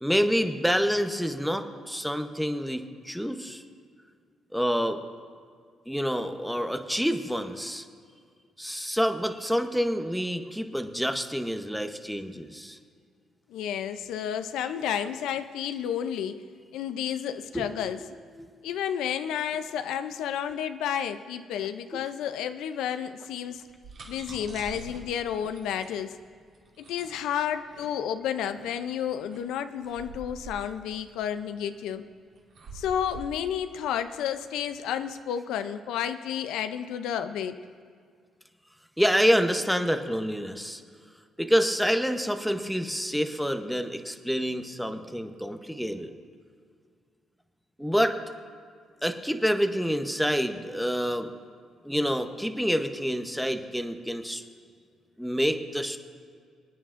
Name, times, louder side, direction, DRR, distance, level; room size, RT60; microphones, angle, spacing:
voice 1, 0.0-3.6 4.5-5.0 5.9-7.9 8.6-12.8 17.5-17.7 18.4-18.5 21.9-22.0 39.0-40.8 41.4-46.1 47.8-48.2 49.0-51.3 51.8-54.4 55.2-56.0, equal, ahead, 7 dB, 0.8 m, -27 dB
voice 2, 13.5-16.4 16.7-18.0 18.6-23.6 24.1-26.2 26.8-32.0 32.7-37.6, left 9 dB, 90° left, 10 dB, 0.4 m, -31 dB
sound 1, 23.5-34.9, right 2 dB, 65° right, 2.6 m, -47 dB
26.5 x 9.2 x 2.5 m, 2.1 s
cardioid pair, 90°, 0 cm